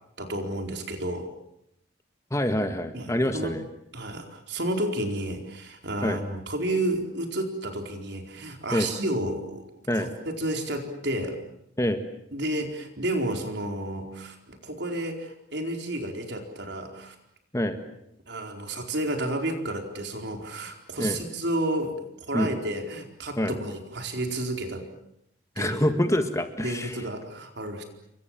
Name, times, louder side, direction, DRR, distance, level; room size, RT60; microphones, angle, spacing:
voice 1, 0.2-1.3 2.9-3.5 3.9-11.4 12.3-17.1 18.3-24.9 25.6-25.9 26.6-27.8, right 1 dB, 60° right, 4 dB, 4.4 m, -31 dB
voice 2, 2.3-3.6 6.0-6.2 8.7-8.9 9.9-10.1 11.8-12.0 17.5-17.8 21.0-21.2 22.3-22.5 23.4-23.5 25.6-27.0, left 1 dB, 15° left, 8 dB, 1.8 m, -26 dB
28.5 x 24.0 x 7.6 m, 0.78 s
head